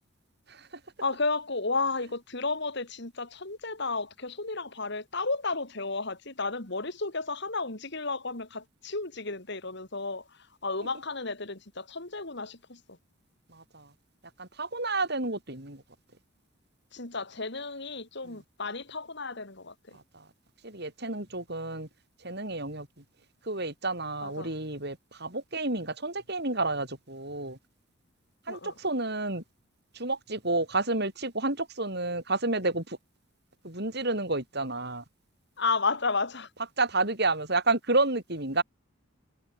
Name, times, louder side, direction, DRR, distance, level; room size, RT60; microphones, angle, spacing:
voice 1, 1.0-10.2 10.6-12.8 16.9-20.0 24.2-24.5 28.5-28.7 35.6-36.5, left 3 dB, 55° left, 2.9 m, -32 dB
voice 2, 13.5-13.9 14.4-15.8 18.2-18.4 19.9-20.2 20.6-21.9 22.2-22.9 23.5-27.6 28.5-29.4 29.9-33.0 33.6-35.0 36.8-38.6, right 2 dB, 50° right, 7.7 m, -30 dB
head